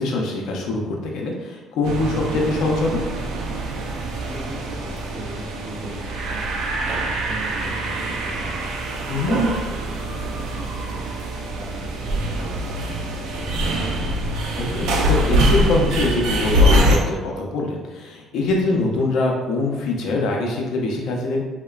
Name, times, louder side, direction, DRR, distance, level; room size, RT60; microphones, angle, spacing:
voice 1, 0.0-3.1 9.1-9.3 14.6-21.4, left 2 dB, 75° left, 0 dB, 0.5 m, -23 dB
sound 1, 1.8-17.0, equal, 90° right, 0.4 m, -23 dB
voice 2, 4.1-6.5 6.8-9.1 9.4-11.0 11.5-14.1, right 1 dB, 10° right, -13 dB, 1.0 m, -39 dB
2.9 x 2.1 x 2.3 m, 1.2 s
cardioid pair, 145°, 0 cm